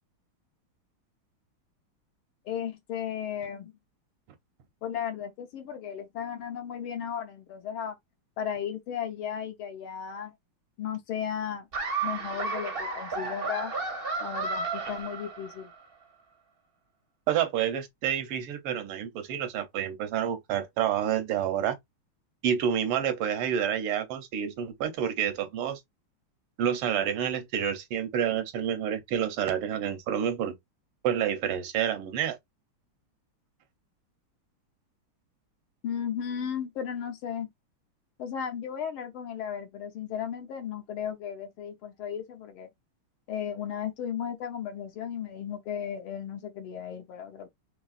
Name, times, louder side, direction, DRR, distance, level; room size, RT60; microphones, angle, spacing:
voice 1, 2.5-3.7 4.8-8.0 8.4-10.3 10.8-11.7 12.0-13.7 14.2-15.7 35.8-37.5 38.2-42.7 43.3-47.5, left 8 dB, 75° left, 1.8 m, -35 dB
Laughter, 11.7-15.7, right 4 dB, 55° right, 0.6 m, -33 dB
voice 2, 17.3-21.8 22.4-25.8 26.6-30.6 31.0-32.4, right 9 dB, 85° right, 1.7 m, -28 dB
4.4 x 3.1 x 2.4 m
omnidirectional pair, 2.4 m